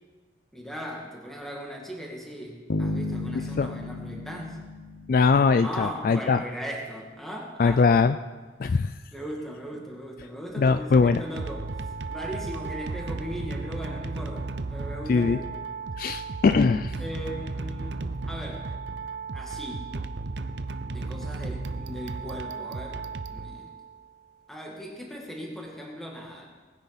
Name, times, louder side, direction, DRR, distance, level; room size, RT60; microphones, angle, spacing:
voice 1, 0.5-4.6 5.5-7.8 9.1-11.7 12.1-15.4 17.0-18.7 19.3-19.9 20.9-23.0 23.3-23.7 24.5-26.5, equal, ahead, -2 dB, 2.2 m, -38 dB
sound 1, 2.7-5.7, left 2 dB, 85° left, 0.7 m, -33 dB
voice 2, 5.1-6.4 7.6-8.2 8.6-8.9 10.6-11.2 15.1-15.4 16.0-16.9, left 4 dB, 50° left, 11 dB, 0.3 m, -21 dB
sound 2, 10.8-24.0, right 3 dB, 70° right, 0.7 m, -35 dB
19.0 x 10.0 x 4.1 m, 1.4 s
head